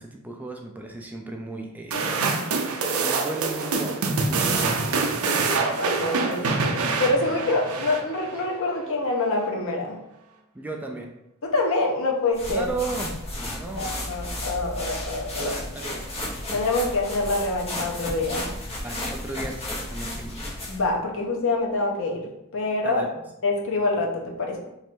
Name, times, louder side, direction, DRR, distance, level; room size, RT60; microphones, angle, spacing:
voice 1, 0.0-2.0 3.0-4.9 10.5-11.1 12.5-13.9 15.4-16.1 18.8-20.5 22.8-23.1, right 2 dB, 5° right, 2 dB, 0.3 m, -35 dB
sound 1, 1.9-8.4, right 4 dB, 70° right, 0.5 m, -25 dB
voice 2, 5.3-10.0 11.4-12.7 13.6-15.5 16.5-18.5 20.7-23.1 23.4-24.6, left 2 dB, 65° left, 0 dB, 0.8 m, -26 dB
sound 2, 12.3-20.9, left 1 dB, 30° left, 1.0 m, -33 dB
3.2 x 2.6 x 4.4 m, 0.84 s
head